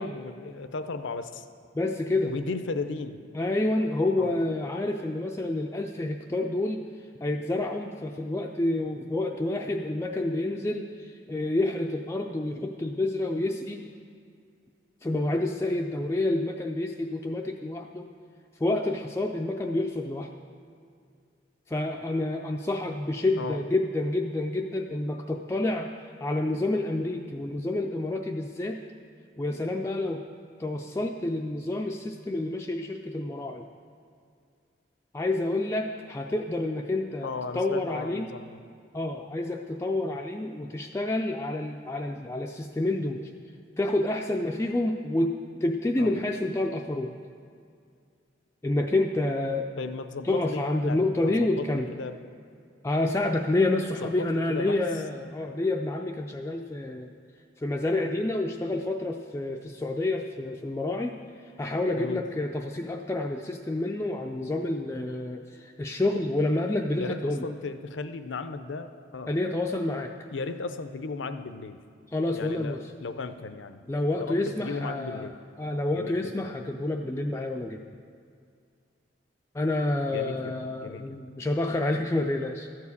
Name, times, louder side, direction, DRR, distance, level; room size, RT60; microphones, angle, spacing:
voice 1, 0.0-1.5 2.2-3.2 4.2-4.4 23.4-23.6 37.2-38.6 46.0-46.2 49.8-52.2 54.0-55.0 61.9-62.2 67.0-69.3 70.3-71.8 72.3-73.8 74.2-75.4 75.9-76.4 80.1-81.2, left 4 dB, 75° left, 10 dB, 0.6 m, -36 dB
voice 2, 1.7-2.3 3.3-6.9 7.2-13.8 15.0-18.1 18.6-20.3 21.7-25.9 26.2-28.8 29.4-30.2 30.6-33.7 35.1-38.3 38.9-43.3 43.8-47.1 48.6-49.7 50.2-51.9 52.8-57.1 57.6-61.1 61.6-67.5 69.3-70.1 72.1-72.8 73.9-75.3 75.6-77.8 79.5-82.7, left 2 dB, 15° left, 2 dB, 0.4 m, -28 dB
13.0 x 4.7 x 8.3 m, 2.3 s
head